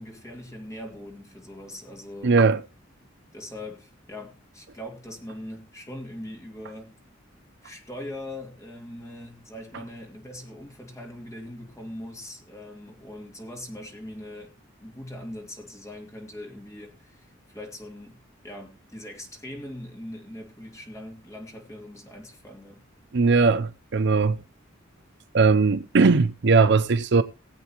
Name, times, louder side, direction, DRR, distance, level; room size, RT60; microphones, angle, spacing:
voice 1, 0.0-2.4 3.3-7.0 7.6-14.6 14.8-22.8, left 1 dB, 15° left, 2.6 m, -41 dB
voice 2, 2.2-2.6 23.1-24.4 25.3-27.2, right 4 dB, 60° right, 0.6 m, -19 dB
19.5 x 8.1 x 3.0 m
head